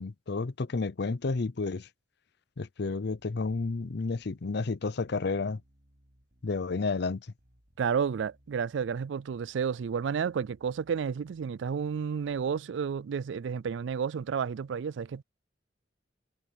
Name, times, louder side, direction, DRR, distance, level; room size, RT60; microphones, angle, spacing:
voice 1, 0.0-1.9 2.6-5.6 6.4-7.3, left 3 dB, 60° left, 0.6 m, -31 dB
Bass guitar, 3.0-12.6, equal, 55° right, 7.2 m, -66 dB
voice 2, 7.8-15.2, right 6 dB, 75° right, 0.4 m, -31 dB
head